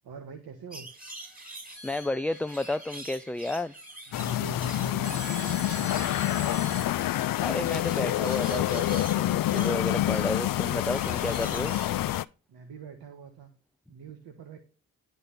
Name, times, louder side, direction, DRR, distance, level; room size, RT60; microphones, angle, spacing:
voice 1, 0.0-0.9 4.1-6.4 12.5-13.5 13.9-14.6, right 6 dB, 75° right, 6 dB, 1.5 m, -44 dB
sound 1, 0.7-12.2, right 1 dB, 20° right, 4.7 m, -45 dB
voice 2, 1.8-3.7 7.4-11.8, left 2 dB, 5° left, 11 dB, 0.4 m, -32 dB
sound 2, 1.8-4.0 5.0-6.9, right 2 dB, 35° right, 2.8 m, -43 dB
sound 3, 4.1-12.2, left 14 dB, 60° left, 0.5 m, -27 dB
11.0 x 4.1 x 6.9 m, 0.33 s
supercardioid pair, 45°, 38 cm